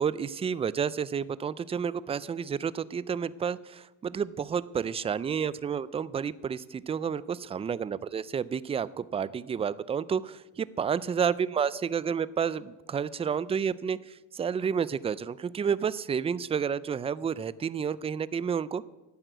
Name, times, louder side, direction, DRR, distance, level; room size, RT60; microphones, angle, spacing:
voice 1, 0.0-18.8, right 7 dB, 20° right, 18 dB, 0.3 m, -30 dB
11.5 x 9.1 x 7.9 m, 1.1 s
cardioid pair, 135°, 35 cm